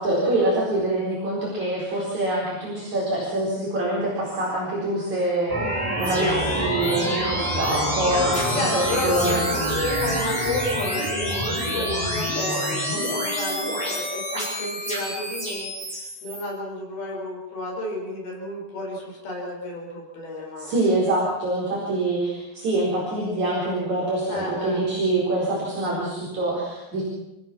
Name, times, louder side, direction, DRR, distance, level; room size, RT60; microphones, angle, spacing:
voice 1, 0.0-8.6 9.0-9.4 20.6-27.0, right 1 dB, 50° right, -5 dB, 5.8 m, -25 dB
sound 1, 5.5-16.4, equal, 10° right, 6.8 m, -26 dB
voice 2, 6.0-6.5 8.5-20.7 24.3-24.8, left 1 dB, 75° left, -1 dB, 7.1 m, -31 dB
29.0 x 16.0 x 6.2 m, 0.95 s
omnidirectional pair, 4.4 m